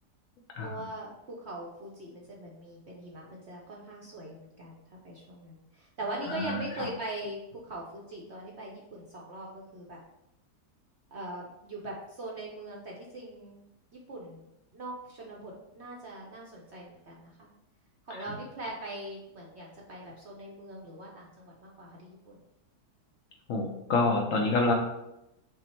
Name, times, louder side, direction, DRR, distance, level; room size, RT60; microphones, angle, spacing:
voice 1, 0.6-10.0 11.1-13.6 14.1-14.4 14.7-17.5 18.1-22.4, right 1 dB, 55° right, -2 dB, 0.8 m, -41 dB
voice 2, 6.3-6.6 23.5-24.7, left 3 dB, 65° left, 0 dB, 0.9 m, -27 dB
5.9 x 2.1 x 4.3 m, 0.87 s
omnidirectional pair, 1.8 m